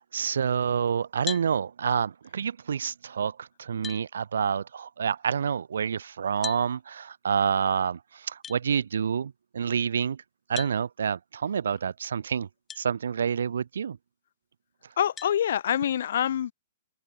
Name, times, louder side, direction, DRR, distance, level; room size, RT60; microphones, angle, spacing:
voice 1, 0.1-10.2 10.5-12.5 12.8-14.0, right 7 dB, 80° right, 0.9 m, -28 dB
sound 1, 1.3-1.5 3.2-3.3 3.8-4.0 6.4-6.7 8.4-8.6 10.6-10.8 12.7-12.8 13.5-13.6 15.2-15.4, left 7 dB, 15° left, 1.0 m, -37 dB
voice 2, 15.0-16.5, left 10 dB, 70° left, 0.4 m, -25 dB
hypercardioid pair, 135°, 0 cm